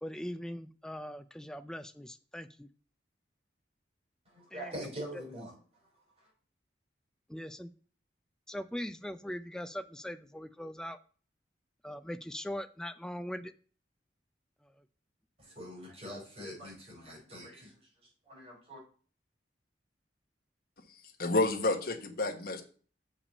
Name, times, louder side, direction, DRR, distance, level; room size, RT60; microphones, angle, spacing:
voice 1, 0.0-2.7 4.5-4.7 5.1-5.2 7.3-7.7 8.5-11.0 11.8-13.5 14.6-14.8, equal, 5° left, 9 dB, 0.4 m, -41 dB
voice 2, 4.2-5.5 6.2-6.3 15.4-17.8 18.2-18.8, equal, 35° right, -3 dB, 5.1 m, -44 dB
voice 3, 20.9-22.6, left 2 dB, 55° left, 4 dB, 1.4 m, -30 dB
6.9 x 5.8 x 5.3 m, 0.40 s
head